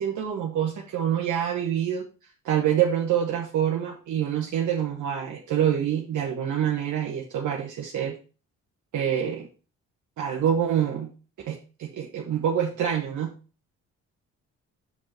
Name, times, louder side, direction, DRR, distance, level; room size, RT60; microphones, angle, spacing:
voice 1, 0.0-2.0 2.4-8.2 8.9-9.5 10.2-11.1 11.5-13.3, right 9 dB, 75° right, -1 dB, 1.4 m, -26 dB
6.9 x 5.5 x 4.4 m, 0.35 s
cardioid pair, 90°, 30 cm